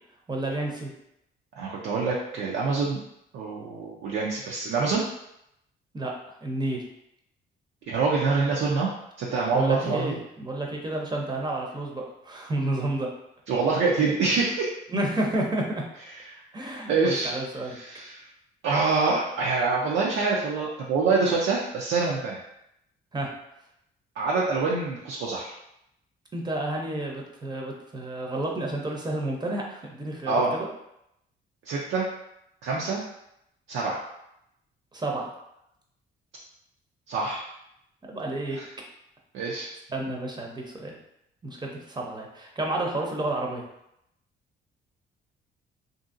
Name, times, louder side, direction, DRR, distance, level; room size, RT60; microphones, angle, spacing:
voice 1, 0.3-0.9 5.9-6.1 6.4-6.8 9.5-13.1 14.9-15.8 16.5-17.8 23.1-23.3 26.3-30.7 34.9-35.3 38.1-38.6 39.9-41.0 41.4-43.6, right 1 dB, 20° right, 0 dB, 0.6 m, -30 dB
voice 2, 1.6-3.0 3.3-5.0 7.9-8.9 9.2-10.2 13.5-14.7 16.9-17.3 17.6-18.2 18.6-22.4 24.2-25.5 30.3-30.5 31.7-32.1 32.6-33.0 33.7-34.0 37.1-37.4 38.5-38.7 39.3-39.7, right 4 dB, 75° right, -4 dB, 0.5 m, -25 dB
2.7 x 2.6 x 2.5 m, 0.80 s
cardioid pair, 90°, 20 cm